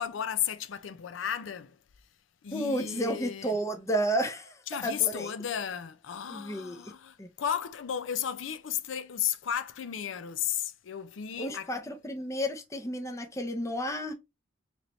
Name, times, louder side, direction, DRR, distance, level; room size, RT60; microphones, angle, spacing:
voice 1, 0.0-1.8 2.4-3.6 4.7-11.7, left 9 dB, 85° left, 0.5 m, -34 dB
voice 2, 2.5-5.3 6.3-6.9 7.2-7.3 11.4-14.1, right 1 dB, 15° left, 0.6 m, -32 dB
4.0 x 3.0 x 3.0 m
head